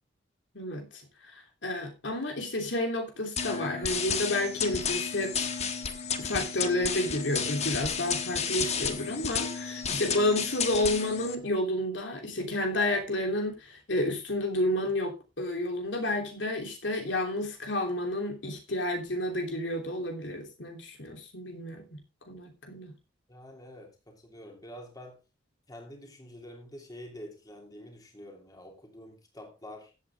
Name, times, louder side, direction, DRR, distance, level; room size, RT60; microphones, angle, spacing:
voice 1, 0.5-5.5 6.2-22.0 22.3-22.9, left 1 dB, 75° left, 3 dB, 3.2 m, -31 dB
sound 1, 3.4-11.4, left 6 dB, 35° left, 1.3 m, -32 dB
voice 2, 23.3-25.2 25.7-29.9, left 1 dB, 20° left, 2 dB, 3.0 m, -47 dB
15.0 x 8.6 x 3.5 m, 0.28 s
head